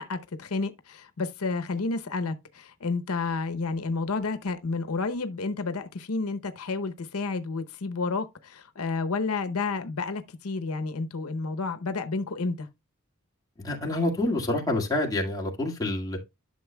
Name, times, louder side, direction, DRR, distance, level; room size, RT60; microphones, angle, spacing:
voice 1, 0.0-12.7, left 3 dB, 90° left, 0.8 m, -30 dB
voice 2, 13.6-16.2, left 1 dB, 15° left, 1.9 m, -27 dB
11.5 x 6.5 x 2.2 m
head